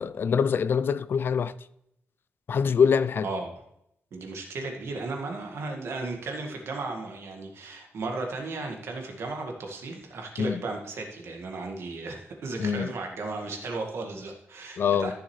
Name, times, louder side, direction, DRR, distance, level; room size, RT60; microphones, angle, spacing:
voice 1, 0.0-1.5 2.5-3.3 10.4-10.6 12.6-12.9 14.8-15.1, left 6 dB, 55° left, 0.3 m, -24 dB
voice 2, 4.1-15.1, right 3 dB, 75° right, 1.8 m, -35 dB
14.0 x 6.7 x 3.2 m
wide cardioid pair, 165°, 4 cm